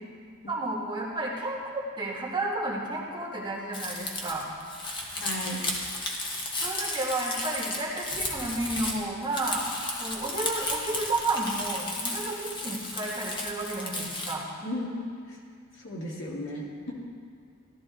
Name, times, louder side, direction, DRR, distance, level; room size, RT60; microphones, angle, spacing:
voice 1, 0.5-4.4 6.6-9.7 10.0-14.4, right 2 dB, 20° right, -5 dB, 2.0 m, -32 dB
Crumpling crinkling, 3.7-14.3, left 2 dB, 25° left, 1.3 m, -34 dB
voice 2, 5.2-5.6 14.6-15.0 15.3-15.4 15.7-16.9, left 1 dB, 65° left, -3 dB, 2.0 m, -35 dB
14.0 x 12.5 x 3.9 m, 2.3 s
head